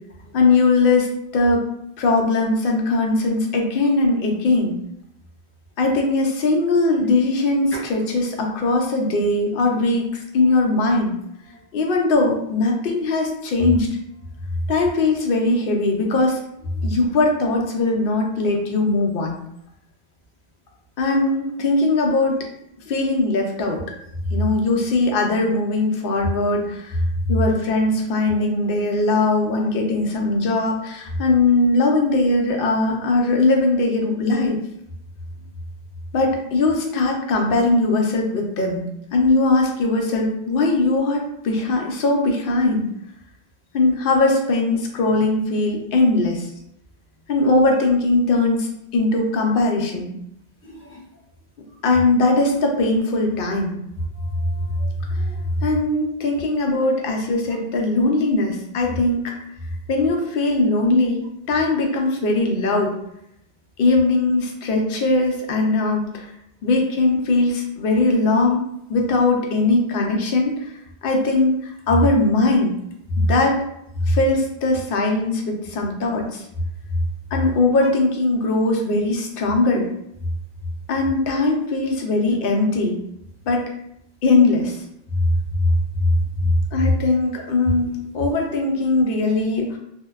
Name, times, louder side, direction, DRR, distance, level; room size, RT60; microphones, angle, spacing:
voice 1, 0.3-1.1 1.3-1.7 2.0-4.7 5.8-11.1 11.7-13.9 14.7-16.4 16.8-19.4 21.0-22.4 22.9-23.8 24.3-27.0 27.3-34.6 36.1-38.8 39.1-42.9 43.7-46.5 47.3-50.1 51.8-53.8 55.6-59.3 59.9-62.9 63.8-66.3 66.6-68.6 68.9-70.7 71.0-72.7 73.2-73.6 74.1-76.5 77.3-79.9 80.9-83.0 83.5-83.6 84.2-84.8 86.7-89.8, left 2 dB, 65° left, 1 dB, 0.7 m, -20 dB
voice 2, 50.6-51.0 54.2-54.9 55.1-55.4 73.1-73.2 85.1-85.2 85.5-86.1 86.4-86.5, left 1 dB, 15° left, -7 dB, 0.8 m, -23 dB
2.6 x 2.1 x 2.2 m, 0.78 s
omnidirectional pair, 1.1 m